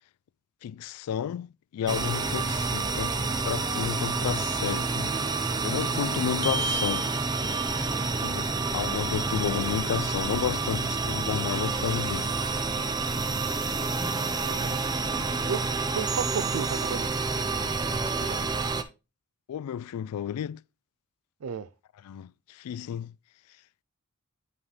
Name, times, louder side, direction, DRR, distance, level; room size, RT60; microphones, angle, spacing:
voice 1, 0.6-5.1 5.6-7.1 8.2-12.3 19.5-20.6 22.0-23.1, left 9 dB, 85° left, 0.3 m, -32 dB
sound 1, 1.9-18.8, right 3 dB, 20° right, 0.6 m, -28 dB
voice 2, 14.4-14.8 15.5-17.3 18.1-18.4 21.4-21.7, right 6 dB, 80° right, 0.4 m, -34 dB
9.4 x 5.5 x 3.3 m
head